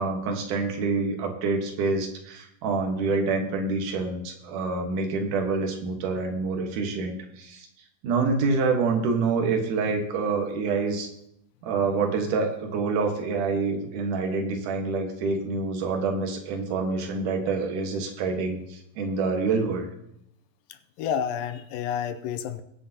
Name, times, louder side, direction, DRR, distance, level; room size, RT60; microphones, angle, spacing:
voice 1, 0.0-7.7 8.0-11.1 11.6-19.9, right 4 dB, 65° right, 3 dB, 2.8 m, -27 dB
voice 2, 20.7-22.6, left 8 dB, 85° left, 10 dB, 2.3 m, -30 dB
22.0 x 8.0 x 2.8 m, 0.78 s
omnidirectional pair, 4.1 m